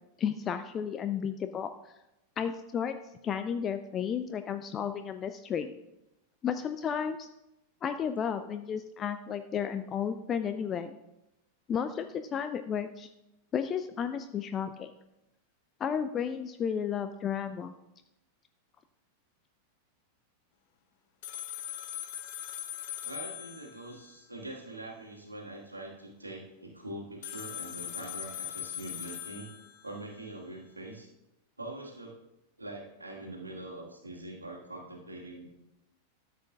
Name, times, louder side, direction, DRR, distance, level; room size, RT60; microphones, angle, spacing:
voice 1, 0.2-1.7 2.4-3.0 3.2-5.7 6.4-7.3 7.8-11.0 11.7-13.1 13.5-14.9 15.8-17.7, left 7 dB, 25° left, 9 dB, 0.4 m, -33 dB
sound 1, 21.2-24.1 27.2-30.1, left 12 dB, 50° left, 0.8 m, -40 dB
voice 2, 23.0-29.5 29.8-31.1 31.6-32.1 32.6-35.6, right 1 dB, 80° right, -1 dB, 1.7 m, -43 dB
13.0 x 7.5 x 2.4 m, 0.91 s
figure-of-eight pair, 90°, 0 cm